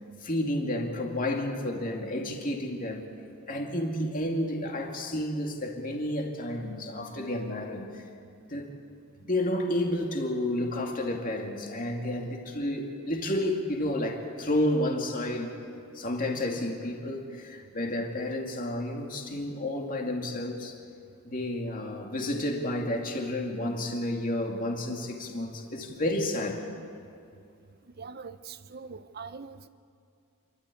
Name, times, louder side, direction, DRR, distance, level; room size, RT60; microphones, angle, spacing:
voice 1, 0.2-3.0 3.5-8.0 8.5-8.7 9.2-15.5 15.9-20.8 21.2-26.7, left 1 dB, 40° left, 2 dB, 2.5 m, -31 dB
voice 2, 28.0-29.7, right 5 dB, 45° right, 12 dB, 0.7 m, -42 dB
28.5 x 13.0 x 8.5 m, 2.5 s
head